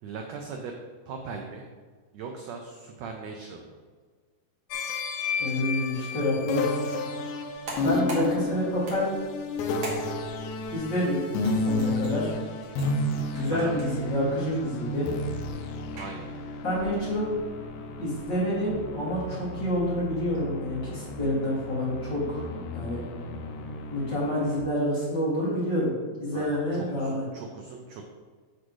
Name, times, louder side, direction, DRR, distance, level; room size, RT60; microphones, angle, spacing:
voice 1, 0.0-0.8 1.1-1.7 2.1-3.8 13.5-13.8 15.9-16.3 26.3-28.0, right 5 dB, 85° right, 2 dB, 1.5 m, -39 dB
sound 1, 4.7-24.6, left 2 dB, 75° left, 2.0 m, -32 dB
voice 2, 5.4-6.7 7.8-9.1 10.7-11.2 11.6-12.4 13.3-15.1 16.6-17.3 18.0-23.0 23.9-25.9 26.2-27.2, left 1 dB, 35° left, -8 dB, 2.7 m, -28 dB
sound 2, 7.4-19.2, right 1 dB, 50° right, 2.3 m, -45 dB
8.2 x 6.2 x 3.1 m, 1.5 s
omnidirectional pair, 3.8 m